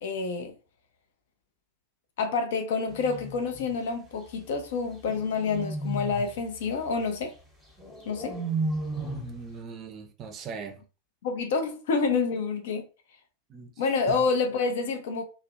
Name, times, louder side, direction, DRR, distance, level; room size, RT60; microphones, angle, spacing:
voice 1, 0.0-0.5 2.2-7.3 8.0-8.4 11.2-12.8 13.8-15.2, left 4 dB, 55° left, 0.5 m, -28 dB
sound 1, 2.9-3.8 5.1-6.4 7.8-9.4, right 1 dB, ahead, 0.8 m, -33 dB
voice 2, 9.0-10.8 13.5-13.7 14.1-14.2, right 6 dB, 30° right, 0.5 m, -39 dB
2.4 x 2.0 x 2.5 m
figure-of-eight pair, 90°, 0 cm